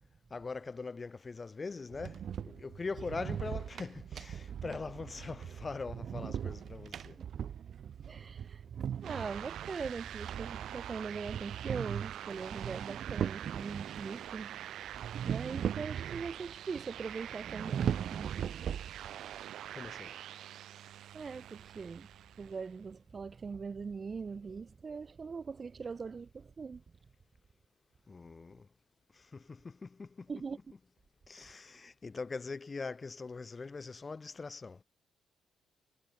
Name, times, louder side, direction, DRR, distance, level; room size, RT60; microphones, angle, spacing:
voice 1, 0.3-7.2 19.7-20.1 28.1-28.7 29.1-30.4 31.3-34.8, left 4 dB, 30° left, 5.3 m, -42 dB
sound 1, 1.9-14.1 14.9-16.5 16.8-16.9 17.4-19.3, right 8 dB, 60° right, 0.3 m, -39 dB
voice 2, 8.1-8.6 9.0-14.6 15.2-18.3 21.1-22.1 22.4-26.8 30.3-30.6, right 5 dB, 35° right, 0.9 m, -41 dB
sound 2, 9.0-22.7, right 11 dB, 75° right, 4.0 m, -45 dB
cardioid pair, 110°, 0 cm